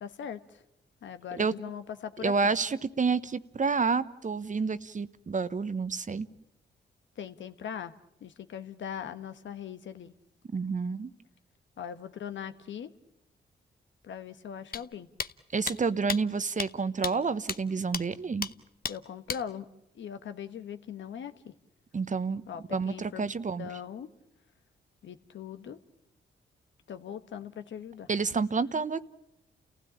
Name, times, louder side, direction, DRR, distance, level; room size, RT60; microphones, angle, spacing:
voice 1, 0.0-0.6 1.0-2.5 7.2-7.9 8.2-10.1 11.8-12.9 14.0-15.1 18.9-19.7 19.9-21.5 22.5-23.3 23.6-24.1 25.0-25.8 26.9-28.1, left 8 dB, 75° left, 10 dB, 1.3 m, -40 dB
voice 2, 2.2-6.3 10.5-11.1 15.5-18.5 21.9-22.4 22.7-23.7 28.1-29.1, right 4 dB, 40° right, 14 dB, 1.1 m, -29 dB
sound 1, 14.7-14.8 15.2-15.3 15.7-15.8 16.1-16.2 16.6-16.7 17.0-17.1 17.5-17.6 17.9-18.0 18.4-18.5 18.8-19.0 19.3-19.4, left 6 dB, 50° left, 1.0 m, -32 dB
30.0 x 16.0 x 8.7 m, 0.85 s
supercardioid pair, 55°, 20 cm